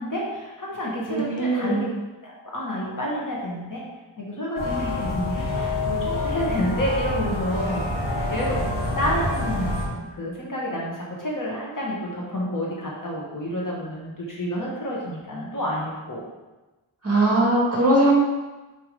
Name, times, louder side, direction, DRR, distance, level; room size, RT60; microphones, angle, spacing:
voice 1, 0.0-1.8 2.2-3.8 4.2-8.7 9.0-16.2, equal, 40° left, -4 dB, 1.3 m, -29 dB
voice 2, 1.1-1.8 17.0-18.1, right 1 dB, 30° right, -4 dB, 2.0 m, -20 dB
sound 1, 4.6-9.9, left 2 dB, 65° left, 1.4 m, -27 dB
5.0 x 4.4 x 5.2 m, 1.2 s
wide cardioid pair, 140°, 49 cm